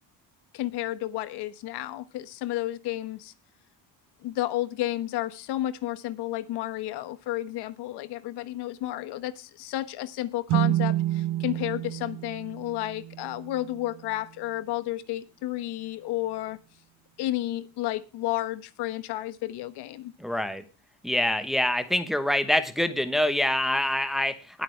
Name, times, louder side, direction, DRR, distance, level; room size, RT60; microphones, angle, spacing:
voice 1, 0.5-3.3 4.2-16.6 17.2-20.1, left 15 dB, 70° left, 13 dB, 1.3 m, -32 dB
sound 1, 10.5-14.1, right 14 dB, 70° right, 0.8 m, -29 dB
voice 2, 20.2-20.6 21.0-24.6, left 1 dB, ahead, 10 dB, 1.1 m, -25 dB
20.0 x 8.3 x 3.3 m, 0.31 s
cardioid pair, 140°, 41 cm